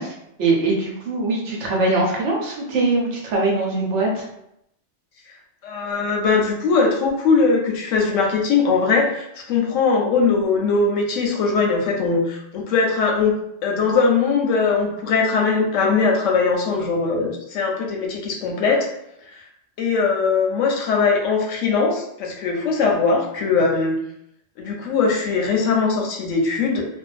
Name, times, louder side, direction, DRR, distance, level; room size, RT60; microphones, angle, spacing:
voice 1, 0.0-4.2, right 2 dB, 75° right, -2 dB, 1.0 m, -22 dB
voice 2, 5.6-13.3 13.6-18.9 19.2-19.4 19.8-24.0 24.6-26.9, left 4 dB, 90° left, 0 dB, 1.0 m, -20 dB
2.5 x 2.1 x 2.4 m, 0.79 s
omnidirectional pair, 1.3 m